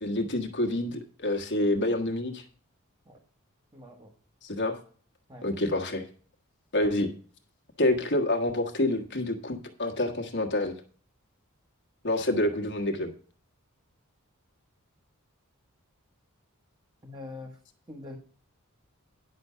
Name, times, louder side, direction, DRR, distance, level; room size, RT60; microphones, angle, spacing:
voice 1, 0.0-2.4 4.4-4.8 5.4-6.0 6.7-7.1 7.8-10.7 12.0-13.1, left 1 dB, 55° left, 3 dB, 1.5 m, -27 dB
voice 2, 3.7-4.1 5.3-5.5 17.0-17.6 17.9-18.2, left 2 dB, 20° right, 1 dB, 1.4 m, -43 dB
10.5 x 6.2 x 5.6 m, 0.43 s
head